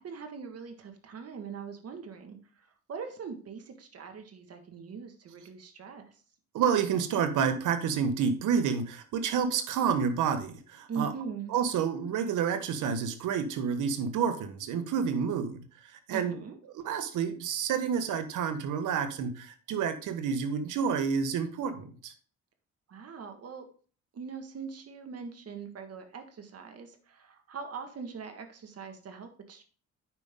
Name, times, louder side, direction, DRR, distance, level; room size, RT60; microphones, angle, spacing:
voice 1, 0.0-2.4 2.9-6.0 10.9-11.5 16.1-16.6 22.9-23.7 24.1-29.6, right 6 dB, 55° right, 6 dB, 1.7 m, -41 dB
voice 2, 6.5-11.1 11.5-16.4 16.7-22.1, right 7 dB, 85° right, 9 dB, 1.3 m, -29 dB
9.0 x 5.5 x 3.7 m, 0.40 s
cardioid pair, 90°, 30 cm